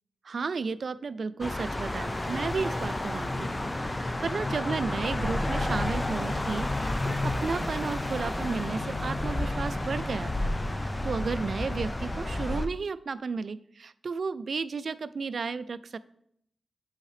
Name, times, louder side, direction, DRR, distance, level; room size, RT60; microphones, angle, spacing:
voice 1, 0.2-3.6 4.0-10.5 10.8-16.0, right 5 dB, 65° right, 15 dB, 0.3 m, -33 dB
sound 1, 1.4-12.7, left 1 dB, 20° left, 0.5 m, -31 dB
8.2 x 5.6 x 3.3 m, 0.71 s
cardioid pair, 65°, 0 cm